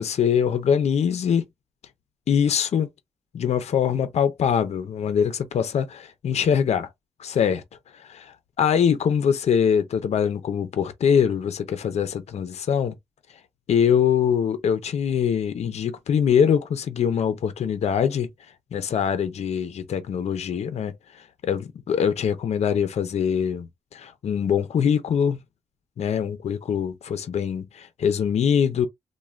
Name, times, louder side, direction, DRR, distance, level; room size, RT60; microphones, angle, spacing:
voice 1, 0.0-1.4 2.3-2.9 3.3-6.9 7.2-7.6 7.9-12.9 13.7-18.3 18.7-25.4 26.0-28.9, left 8 dB, 65° left, 0.5 m, -23 dB
3.2 x 2.2 x 2.3 m
wide cardioid pair, 110°, 12 cm